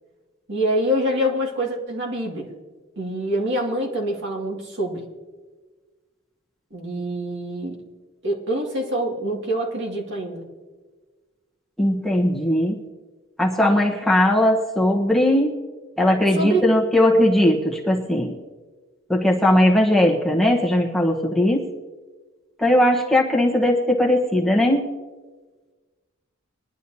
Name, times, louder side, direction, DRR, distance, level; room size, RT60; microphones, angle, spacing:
voice 1, 0.5-2.5 3.0-5.0 6.7-7.8 8.2-10.5 16.3-16.6, equal, 60° right, -1 dB, 2.3 m, -25 dB
voice 2, 11.8-12.8 13.4-15.5 16.0-18.3 19.1-21.6 22.6-24.8, left 1 dB, ahead, -2 dB, 1.1 m, -19 dB
21.5 x 11.0 x 2.8 m, 1.3 s
head